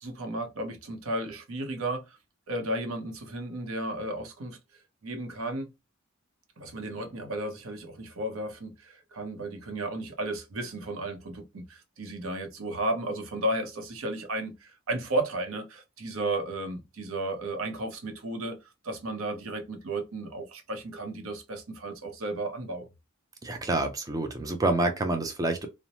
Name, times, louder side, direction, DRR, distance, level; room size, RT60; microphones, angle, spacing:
voice 1, 0.0-2.2 2.5-4.6 5.0-5.7 6.6-18.6 18.8-22.9, right 1 dB, 85° right, 0.7 m, -34 dB
voice 2, 23.4-25.7, right 2 dB, 15° right, 0.4 m, -27 dB
2.9 x 2.0 x 2.8 m
head